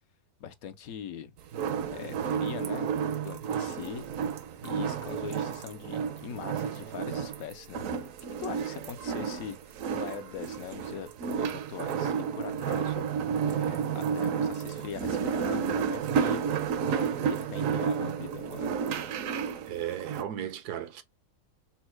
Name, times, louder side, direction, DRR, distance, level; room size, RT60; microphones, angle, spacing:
voice 1, 0.4-1.3 1.9-2.9 3.2-4.1 4.6-7.8 8.4-9.6 9.9-18.7, left 8 dB, 70° left, 1.0 m, -42 dB
sound 1, 1.5-20.2, right 7 dB, 65° right, 0.9 m, -31 dB
voice 2, 19.6-21.0, right 11 dB, 85° right, 1.2 m, -35 dB
4.3 x 2.1 x 4.4 m
omnidirectional pair, 1.7 m